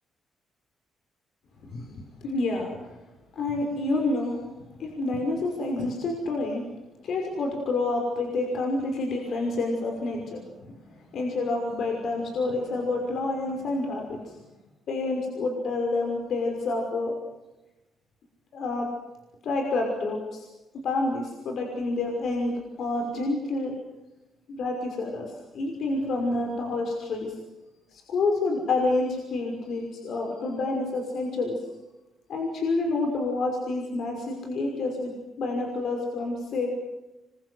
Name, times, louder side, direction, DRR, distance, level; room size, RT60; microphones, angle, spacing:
voice 1, 2.2-2.9 3.3-4.4 4.8-6.6 7.0-10.4 11.1-14.4 14.9-17.1 18.5-18.9 19.4-20.5 20.8-22.5 22.8-23.7 24.5-27.4 27.9-31.6 32.3-35.1 35.4-36.7, left 2 dB, 65° left, 1 dB, 5.8 m, -28 dB
27.5 x 24.5 x 8.0 m, 1.0 s
cardioid pair, 90°, 0 cm